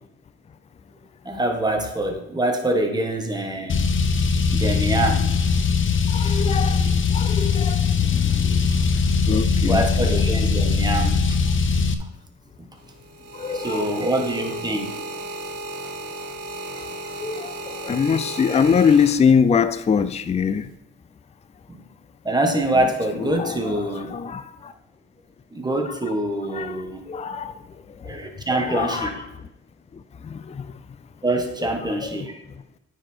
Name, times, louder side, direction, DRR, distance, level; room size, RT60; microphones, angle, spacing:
voice 1, 1.2-3.8 4.5-5.3 9.6-11.4 12.6-12.7 13.5-15.0 21.7-21.8 22.2-24.1 25.5-27.1 28.0-29.2 31.2-32.4, right 1 dB, 15° right, 1.5 m, -25 dB
Car, 3.7-11.9, left 5 dB, 40° left, 0.8 m, -20 dB
voice 2, 6.1-8.7 9.3-9.8 13.4-14.3 17.2-20.7 23.2-24.7 26.5-26.8 27.1-27.6 28.0-28.2 28.7-29.1 30.2-30.7, left 6 dB, 20° left, 0.4 m, -23 dB
sound 1, 12.8-19.6 20.4-20.7, right 2 dB, 55° right, 2.0 m, -35 dB
9.2 x 4.9 x 4.4 m
cardioid pair, 90°, 30 cm